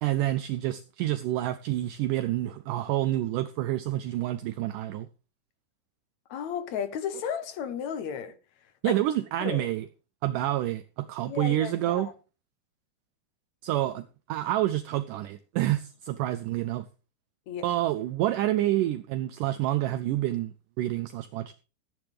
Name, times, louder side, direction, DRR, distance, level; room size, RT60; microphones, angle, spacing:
voice 1, 0.0-5.1 8.8-9.9 10.2-12.1 13.6-16.9 17.6-21.5, right 14 dB, 80° right, 1.9 m, -28 dB
voice 2, 6.3-8.4 8.8-9.0 9.4-9.7 11.3-12.1 17.5-17.7, left 8 dB, 65° left, 1.8 m, -34 dB
17.0 x 10.0 x 3.3 m
omnidirectional pair, 4.5 m